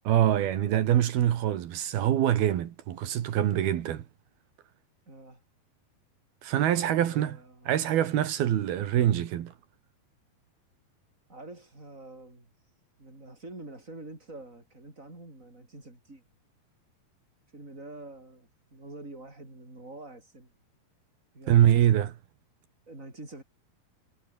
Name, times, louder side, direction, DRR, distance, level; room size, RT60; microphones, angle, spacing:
voice 1, 0.1-4.1 6.4-7.4 7.7-9.5 21.5-22.1, right 11 dB, 80° right, 3.7 m, -24 dB
voice 2, 5.1-5.4 6.7-7.7 11.3-12.5 13.0-16.2 17.5-20.5 21.3-21.6 22.9-23.4, right 2 dB, 20° right, 7.7 m, -46 dB
omnidirectional pair, 4.3 m